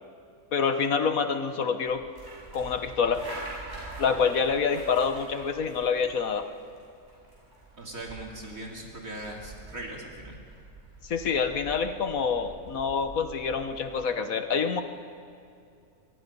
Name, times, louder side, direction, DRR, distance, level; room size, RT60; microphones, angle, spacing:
voice 1, 0.5-2.0 2.5-3.2 4.0-6.4 11.0-14.8, left 6 dB, 65° left, 8 dB, 1.6 m, -27 dB
sound 1, 1.8-14.1, right 2 dB, 30° right, 7.8 m, -45 dB
voice 2, 7.8-10.4, right 1 dB, 65° right, -1 dB, 3.2 m, -40 dB
25.5 x 22.0 x 5.4 m, 2.5 s
omnidirectional pair, 1.6 m